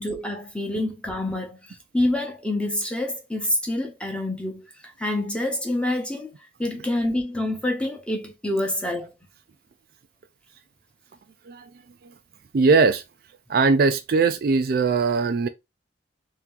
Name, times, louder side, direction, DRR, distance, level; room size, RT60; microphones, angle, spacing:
voice 1, 0.0-1.6 1.9-4.7 5.0-6.3 6.6-9.1, left 1 dB, 5° left, 0.9 m, -27 dB
voice 2, 12.5-13.0 13.5-15.5, right 4 dB, 50° right, 0.4 m, -20 dB
3.4 x 2.9 x 3.7 m
head